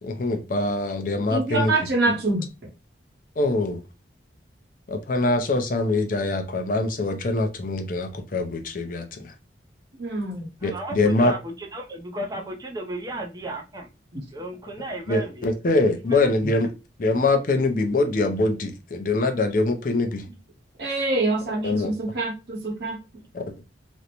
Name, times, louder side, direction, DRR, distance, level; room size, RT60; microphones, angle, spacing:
voice 1, 0.0-1.7 3.4-3.8 4.9-9.3 10.6-11.3 15.1-16.7 17.0-20.2 21.6-21.9, left 2 dB, 45° left, 0.4 m, -23 dB
voice 2, 1.3-2.4 10.0-10.5 14.1-14.2 20.8-23.0, right 2 dB, 60° right, 1.0 m, -25 dB
voice 3, 10.6-13.9 14.3-15.5 16.1-16.2, right 1 dB, 20° right, 0.4 m, -34 dB
2.5 x 2.1 x 2.9 m
head